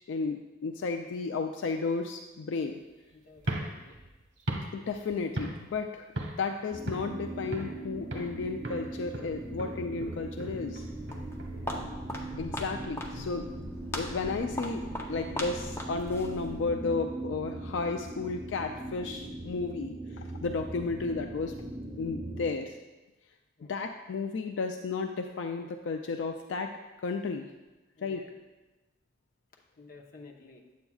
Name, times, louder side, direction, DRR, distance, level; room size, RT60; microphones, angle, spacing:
voice 1, 0.1-2.8 4.7-6.1 6.4-10.8 12.4-13.5 13.9-21.5 22.0-22.8 23.7-26.7 27.0-27.5 28.0-28.2, left 4 dB, 80° left, 5 dB, 0.4 m, -33 dB
voice 2, 3.1-4.0 11.5-11.8 23.6-23.8 27.9-28.3 29.8-30.6, left 3 dB, 50° left, 1 dB, 0.9 m, -53 dB
sound 1, 3.4-5.8 6.2-6.5 6.9-7.8 8.1-8.4 8.6-11.8, right 1 dB, 90° right, 1.1 m, -38 dB
sound 2, 6.7-22.5, right 2 dB, 30° right, 0.7 m, -40 dB
Walk footsteps, 10.7-16.8, left 1 dB, 15° left, 0.6 m, -40 dB
8.3 x 7.8 x 2.3 m, 1.1 s
head